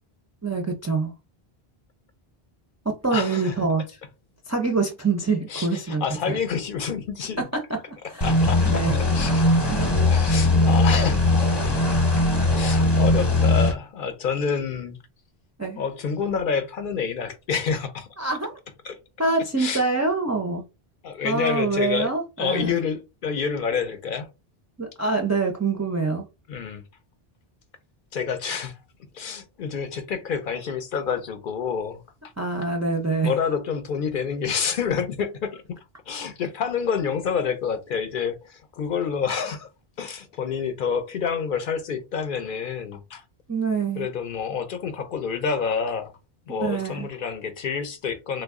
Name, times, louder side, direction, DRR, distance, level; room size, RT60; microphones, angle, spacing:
voice 1, 0.4-1.1 2.9-3.8 4.5-6.4 7.4-7.8 8.1-8.3 8.7-8.9 15.6-15.8 18.2-18.6 19.2-20.6 21.2-22.8 24.8-26.3 32.4-33.3 43.5-44.1 46.5-47.1, right 3 dB, 25° right, 0.3 m, -25 dB
voice 2, 3.1-3.6 5.5-7.5 8.0-9.6 10.1-11.3 12.2-12.3 12.5-15.0 15.8-18.1 18.8-19.0 19.6-19.8 21.0-22.1 22.4-24.3 26.5-26.8 28.1-28.8 29.1-32.0 33.2-39.7 40.0-43.2 44.0-46.1 46.5-48.4, left 6 dB, 60° left, 0.7 m, -28 dB
sound 1, 8.2-13.7, left 2 dB, 25° left, 0.9 m, -20 dB
3.0 x 2.3 x 3.5 m
omnidirectional pair, 1.0 m